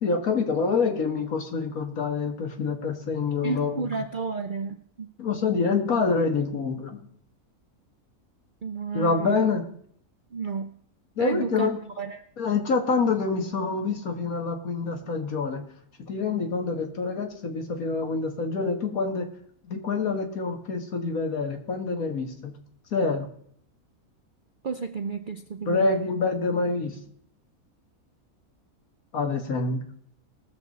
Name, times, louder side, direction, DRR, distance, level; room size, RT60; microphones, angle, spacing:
voice 1, 0.0-3.9 5.2-7.1 8.9-9.6 11.2-11.8 12.4-15.6 16.1-19.3 19.6-22.5 22.9-23.3 25.7-27.0 29.1-29.8, left 4 dB, 65° left, 4 dB, 1.9 m, -26 dB
voice 2, 3.4-5.1 8.6-9.5 10.3-10.7 11.2-12.2 24.6-26.1, right 4 dB, 60° right, 6 dB, 0.5 m, -32 dB
20.5 x 7.1 x 4.1 m, 0.65 s
omnidirectional pair, 1.6 m